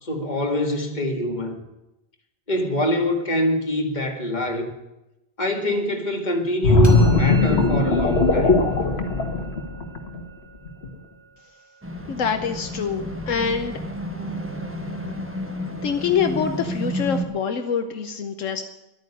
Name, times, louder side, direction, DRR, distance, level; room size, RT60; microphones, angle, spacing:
voice 1, 0.0-1.6 2.5-4.7 5.4-8.5, left 1 dB, 35° left, 3 dB, 2.1 m, -24 dB
sound 1, 6.6-10.2 10.7-10.9, left 2 dB, 55° left, 1.8 m, -18 dB
sound 2, 6.8-12.7, right 4 dB, 10° left, 2.8 m, -41 dB
sound 3, 11.8-17.2, equal, 10° right, 1.3 m, -31 dB
voice 2, 12.1-13.8 15.8-18.6, left 7 dB, 75° left, 7 dB, 1.3 m, -25 dB
12.0 x 9.1 x 9.9 m, 0.93 s
omnidirectional pair, 1.3 m